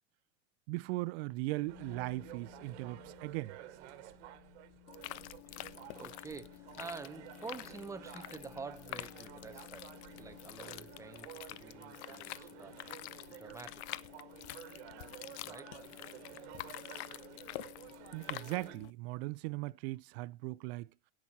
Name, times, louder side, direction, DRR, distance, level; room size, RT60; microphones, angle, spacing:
voice 1, 0.7-3.6 17.5-17.6 18.1-20.9, right 21 dB, 65° right, 0.6 m, -38 dB
sound 1, 1.3-11.2, left 17 dB, 30° left, 1.9 m, -58 dB
sound 2, 1.7-18.8, right 14 dB, 80° right, 1.4 m, -53 dB
sound 3, 4.9-18.9, left 18 dB, 75° left, 0.7 m, -47 dB
voice 2, 5.9-13.9 15.4-15.8, right 4 dB, 10° right, 0.8 m, -48 dB
17.0 x 6.2 x 4.2 m
supercardioid pair, 155°, 33 cm